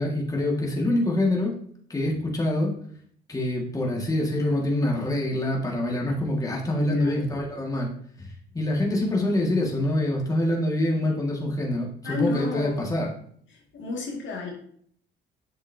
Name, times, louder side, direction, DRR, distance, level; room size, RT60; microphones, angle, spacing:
voice 1, 0.0-1.6 1.9-2.7 3.3-7.9 8.2-13.1, left 1 dB, 15° left, -2 dB, 1.8 m, -25 dB
voice 2, 6.7-7.3 12.0-12.8 13.7-14.5, left 4 dB, 70° left, -1 dB, 2.1 m, -30 dB
7.7 x 7.1 x 2.7 m, 0.62 s
cardioid pair, 90°, 20 cm